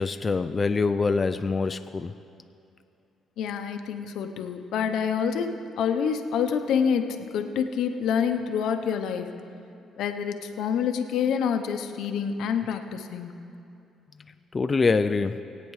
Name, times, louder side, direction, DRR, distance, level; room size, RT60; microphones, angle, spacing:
voice 1, 0.0-2.1 14.5-15.4, left 4 dB, 30° left, 9 dB, 0.3 m, -24 dB
voice 2, 3.4-9.3 10.0-13.3, left 7 dB, 80° left, 6 dB, 0.7 m, -27 dB
21.0 x 8.6 x 3.2 m, 2.6 s
cardioid pair, 80°, 0 cm